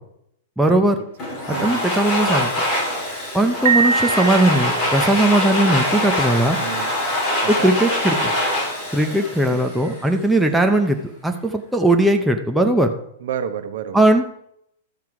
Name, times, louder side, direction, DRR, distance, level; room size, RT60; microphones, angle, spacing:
voice 1, 0.6-1.0 1.5-2.5 3.3-6.6 7.6-8.3 8.9-12.9 13.9-14.2, right 1 dB, ahead, 3 dB, 0.6 m, -18 dB
Domestic sounds home sounds, 1.2-10.1, left 1 dB, 25° left, 3.6 m, -24 dB
voice 2, 1.5-1.8 6.6-7.0 7.4-7.7 9.5-9.7 13.2-14.1, right 8 dB, 65° right, 9 dB, 1.2 m, -30 dB
Piano, 3.7-5.1, right 5 dB, 80° right, 0.9 m, -22 dB
12.5 x 7.5 x 4.8 m, 0.73 s
supercardioid pair, 170°, 0 cm